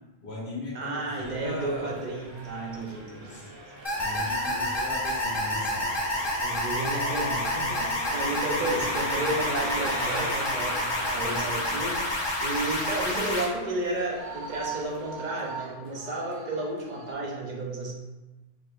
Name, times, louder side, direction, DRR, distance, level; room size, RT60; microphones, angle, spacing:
voice 1, 0.2-1.9 3.2-3.5 4.0-5.8 8.5-8.7, left 2 dB, 75° left, -7 dB, 1.8 m, -38 dB
voice 2, 0.7-3.4 4.1-4.3 6.4-10.8 11.1-17.9, right 2 dB, 45° right, -2 dB, 0.9 m, -32 dB
sound 1, 1.0-17.1, right 2 dB, 75° right, 1.0 m, -44 dB
Engine, 1.2-15.2, equal, 20° right, 1.0 m, -40 dB
sound 2, 3.8-13.4, left 1 dB, 25° left, 0.8 m, -29 dB
4.8 x 4.1 x 2.5 m, 1.1 s
omnidirectional pair, 1.1 m